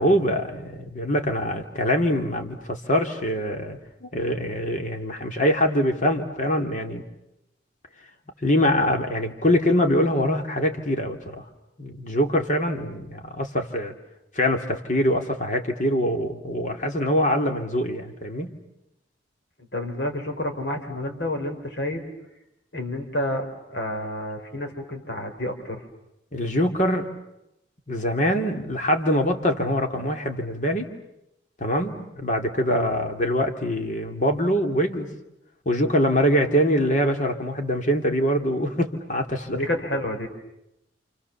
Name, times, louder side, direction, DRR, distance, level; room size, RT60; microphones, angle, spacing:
voice 1, 0.0-7.0 8.4-11.4 11.8-13.9 14.4-18.6 26.3-27.1 27.9-30.9 31.6-35.1 35.7-39.6, equal, 45° left, 4 dB, 2.7 m, -24 dB
voice 2, 19.7-22.1 22.7-25.8 39.5-40.3, left 1 dB, 65° left, 4 dB, 4.3 m, -29 dB
29.5 x 28.5 x 7.2 m, 0.86 s
head